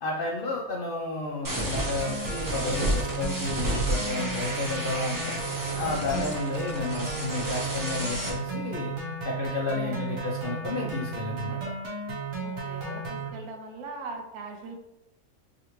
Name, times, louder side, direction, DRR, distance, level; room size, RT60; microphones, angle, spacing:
voice 1, 0.0-5.4 5.8-8.9 9.2-11.6, left 3 dB, 70° left, -2 dB, 0.5 m, -32 dB
sound 1, 1.4-8.3, right 1 dB, 20° right, 0.5 m, -31 dB
sound 2, 1.8-13.3, right 3 dB, 60° right, 1.1 m, -34 dB
voice 2, 9.8-10.2 12.4-14.8, right 3 dB, 80° right, 3 dB, 1.2 m, -40 dB
4.7 x 2.5 x 3.0 m, 0.86 s
omnidirectional pair, 1.5 m